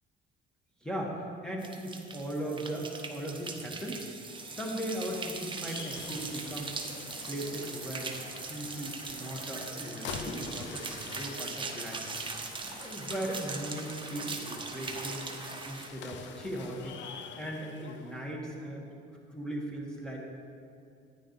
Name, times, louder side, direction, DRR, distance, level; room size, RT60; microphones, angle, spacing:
voice 1, 0.8-4.1 4.5-6.7 7.3-12.0 12.6-15.3 15.6-20.2, right 1 dB, 5° left, -2 dB, 1.8 m, -38 dB
sound 1, 1.6-15.9, right 4 dB, 25° right, 0.9 m, -40 dB
sound 2, 4.2-18.3, left 6 dB, 65° left, 0.6 m, -46 dB
9.9 x 9.3 x 3.3 m, 2.4 s
cardioid pair, 95°, 21 cm